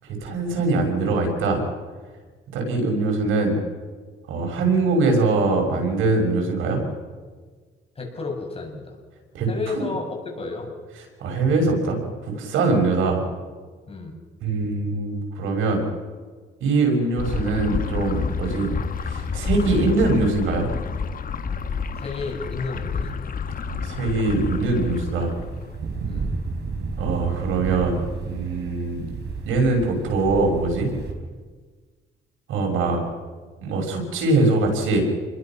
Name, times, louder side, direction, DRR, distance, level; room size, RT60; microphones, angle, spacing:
voice 1, 0.0-1.6 2.5-3.6 4.3-6.8 9.3-9.5 9.7-9.9 11.2-13.2 14.4-15.8 16.6-18.7 19.0-20.7 23.7-25.3 27.0-28.0 28.3-29.0 29.5-30.9 32.5-33.0 33.6-35.0, right 3 dB, 85° right, 2 dB, 6.4 m, -22 dB
voice 2, 8.0-9.0 9.5-10.7 13.9-14.2 22.0-23.1 26.0-26.3, left 3 dB, 30° left, 1 dB, 7.6 m, -32 dB
sound 1, 17.2-25.8, left 5 dB, 45° left, 1.5 m, -29 dB
sound 2, 24.3-31.1, right 4 dB, 60° right, 4.8 m, -32 dB
29.0 x 22.0 x 6.1 m, 1.5 s
cardioid pair, 90°, 20 cm